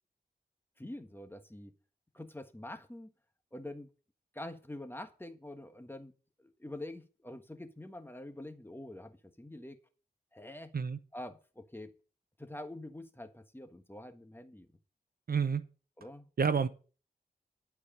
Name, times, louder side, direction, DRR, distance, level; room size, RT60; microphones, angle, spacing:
voice 1, 0.8-1.7 2.1-3.1 3.5-3.9 4.3-6.1 6.4-9.8 10.3-10.7 11.1-11.9 12.4-14.7 16.0-16.3, left 1 dB, 15° left, 1.4 m, -46 dB
voice 2, 15.3-15.6 16.4-16.7, right 6 dB, 60° right, 0.8 m, -28 dB
12.0 x 4.8 x 8.5 m
wide cardioid pair, 70°, 17 cm